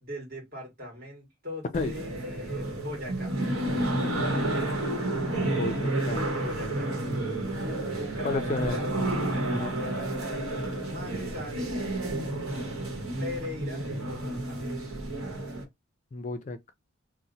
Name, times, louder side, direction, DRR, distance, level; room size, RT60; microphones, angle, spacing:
voice 1, 0.0-4.0 6.3-6.9 7.9-10.0 10.8-11.9 13.2-14.6, left 1 dB, 45° right, 1.6 m, -40 dB
sound 1, 1.7-15.6, right 1 dB, 85° right, 1.0 m, -30 dB
voice 2, 5.4-6.3 8.2-8.8 9.5-9.8 16.1-16.7, left 3 dB, 35° left, 0.3 m, -32 dB
2.8 x 2.1 x 3.9 m
head